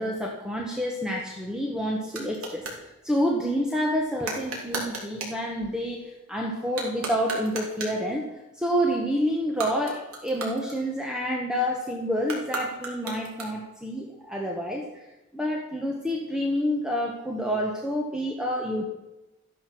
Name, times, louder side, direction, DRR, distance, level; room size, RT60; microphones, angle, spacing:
voice 1, 0.0-8.3 8.5-18.8, equal, 5° right, 0 dB, 1.4 m, -28 dB
sound 1, 1.2-2.8 4.2-5.4 6.6-8.1 9.4-11.2 12.2-13.8, right 2 dB, 70° right, 3.2 m, -36 dB
14.0 x 10.5 x 6.2 m, 0.98 s
head